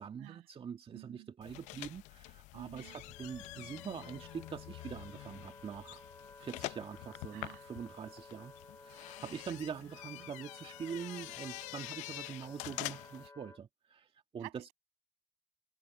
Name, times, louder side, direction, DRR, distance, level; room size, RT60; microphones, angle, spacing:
voice 1, 0.0-6.0 6.4-14.7, right 7 dB, 50° right, 1.9 m, -44 dB
voice 2, 0.9-1.3 2.5-3.0 7.3-7.7 9.3-9.6 10.1-10.3 14.4-14.7, right 31 dB, 80° right, 7.4 m, -51 dB
sound 1, 1.4-13.3, left 21 dB, 75° left, 0.7 m, -47 dB
Wind instrument woodwind instrument, 2.8-13.6, left 3 dB, 25° left, 4.4 m, -55 dB
hypercardioid pair, 45°, 12 cm